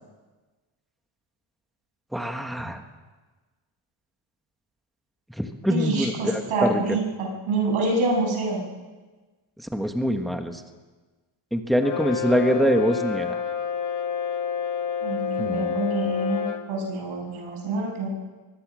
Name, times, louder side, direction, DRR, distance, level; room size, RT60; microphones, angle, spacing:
voice 1, 2.1-2.8 5.4-7.0 9.7-10.6 11.5-13.4 15.4-15.8, equal, ahead, 5 dB, 1.3 m, -24 dB
voice 2, 5.7-8.6 15.0-18.1, right 2 dB, 80° right, 0 dB, 7.9 m, -26 dB
Brass instrument, 11.8-16.7, left 7 dB, 35° left, 1.4 m, -29 dB
23.5 x 20.5 x 6.3 m, 1.3 s
cardioid pair, 170°, 49 cm